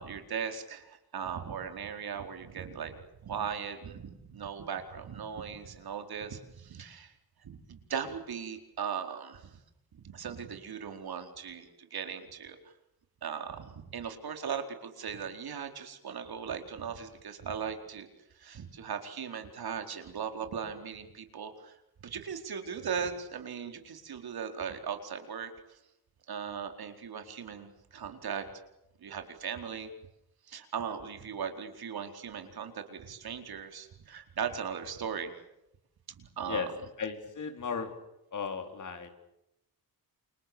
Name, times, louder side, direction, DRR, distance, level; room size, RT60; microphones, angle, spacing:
voice 1, 0.0-7.1 7.4-9.6 9.9-12.6 13.2-18.1 18.3-25.8 26.3-28.4 29.0-29.9 30.5-35.4 36.1-36.7, right 7 dB, 75° right, 6 dB, 4.5 m, -38 dB
voice 2, 37.0-37.9 38.3-39.1, left 5 dB, 55° left, 6 dB, 4.3 m, -35 dB
29.0 x 29.0 x 7.1 m, 0.86 s
wide cardioid pair, 170°, 37 cm